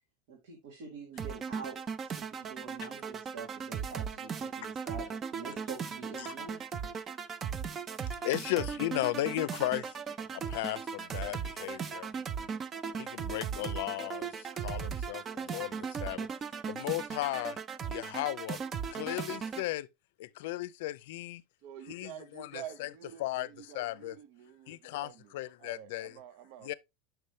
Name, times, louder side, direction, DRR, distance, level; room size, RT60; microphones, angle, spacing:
voice 1, 0.3-1.8 2.1-6.6, right 5 dB, 85° right, 2.1 m, -46 dB
sound 1, 1.2-19.7, right 6 dB, 25° right, 0.4 m, -38 dB
voice 2, 7.9-9.9 10.5-12.1 13.0-16.3 16.7-17.6 17.9-18.6 18.9-19.9 20.2-21.4 21.9-22.9 23.2-24.1 24.7-26.2 26.6-26.7, left 16 dB, 80° left, 0.5 m, -36 dB
voice 3, 21.6-25.3 25.6-26.7, right 10 dB, 65° right, 0.6 m, -48 dB
6.8 x 5.9 x 3.2 m
supercardioid pair, 155°, 0 cm